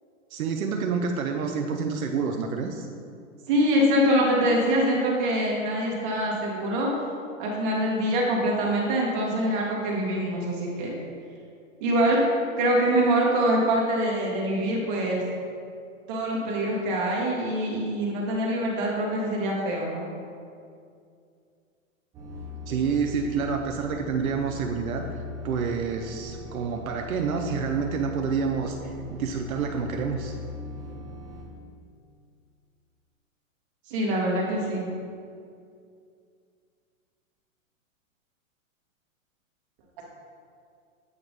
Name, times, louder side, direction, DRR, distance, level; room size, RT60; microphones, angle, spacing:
voice 1, 0.3-2.9 22.7-25.1 25.4-30.4, right 5 dB, 85° right, 3 dB, 0.7 m, -28 dB
voice 2, 3.5-6.9 7.4-10.9 11.8-12.2 12.6-15.2 16.1-20.1 33.9-34.9, right 1 dB, 40° right, -3 dB, 1.5 m, -24 dB
sound 1, 22.1-31.4, left 3 dB, 10° right, 0.4 m, -40 dB
7.9 x 2.9 x 5.2 m, 2.4 s
hypercardioid pair, 145°, 41 cm